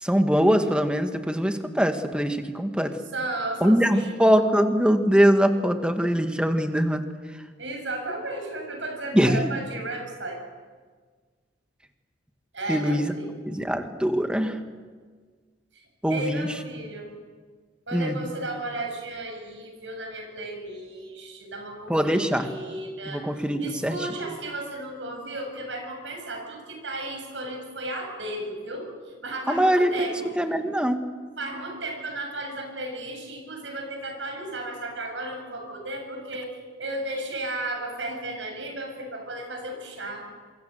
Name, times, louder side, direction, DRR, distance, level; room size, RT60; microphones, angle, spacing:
voice 1, 0.0-2.9 3.6-7.0 9.1-9.5 12.7-13.1 13.5-14.6 16.0-16.5 17.9-18.2 21.9-22.5 23.1-24.0 29.5-31.0, equal, 5° right, 6 dB, 2.0 m, -22 dB
voice 2, 3.1-4.2 7.6-10.4 12.5-13.4 15.7-15.8 16.1-17.1 17.9-30.3 31.4-40.2, right 1 dB, 85° right, 3 dB, 7.5 m, -34 dB
27.0 x 24.0 x 8.0 m, 1.5 s
head